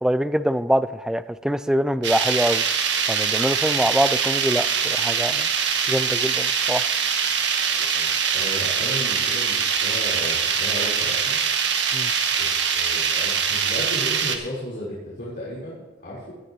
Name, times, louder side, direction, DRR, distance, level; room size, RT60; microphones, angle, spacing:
voice 1, 0.0-2.6 3.1-5.5 5.9-6.8 11.9-12.1, equal, 5° right, 13 dB, 0.3 m, -24 dB
sound 1, 2.0-14.4, right 6 dB, 90° right, 1.3 m, -23 dB
voice 2, 7.7-11.4 12.4-16.3, equal, 60° left, -10 dB, 4.2 m, -35 dB
17.5 x 11.5 x 3.1 m, 1.2 s
head